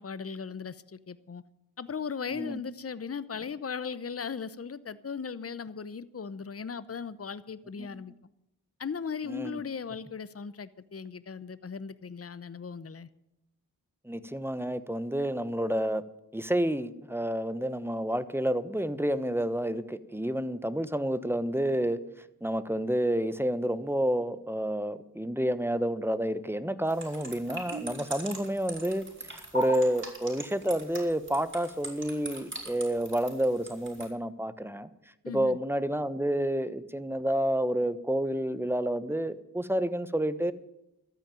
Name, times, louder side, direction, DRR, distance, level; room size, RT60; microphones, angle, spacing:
voice 1, 0.0-1.4 1.8-8.1 8.8-13.1 35.2-35.6, left 6 dB, 35° left, 0.8 m, -37 dB
voice 2, 9.3-9.6 14.0-16.0 16.3-22.0 22.4-34.9 35.3-40.5, right 1 dB, 5° right, 1.1 m, -29 dB
sound 1, 26.9-34.1, right 1 dB, 30° right, 4.9 m, -39 dB
13.0 x 9.3 x 9.1 m
cardioid pair, 45°, 39 cm